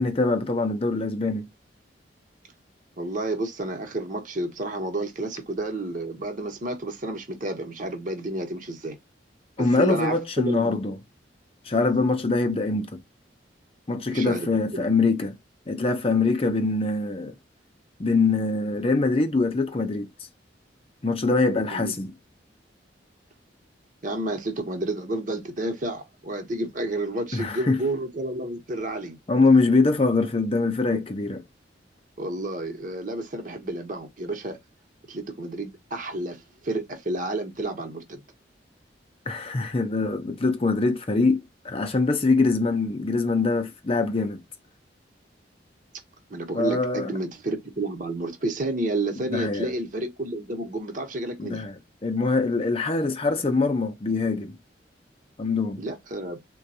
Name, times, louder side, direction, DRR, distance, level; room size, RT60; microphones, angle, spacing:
voice 1, 0.0-1.5 9.6-11.0 11.6-13.0 13.9-15.4 15.7-17.3 18.0-20.1 21.0-22.1 27.3-27.8 29.3-31.4 39.3-44.4 46.5-47.1 49.3-49.7 51.4-54.6 55.4-55.8, left 3 dB, 30° left, 0.5 m, -23 dB
voice 2, 3.0-9.0 9.6-10.8 14.1-14.9 21.7-21.9 24.0-29.2 30.9-31.0 32.2-34.6 35.1-38.2 46.3-51.7 55.8-56.4, right 2 dB, 45° right, 0.9 m, -30 dB
3.8 x 2.3 x 2.7 m
head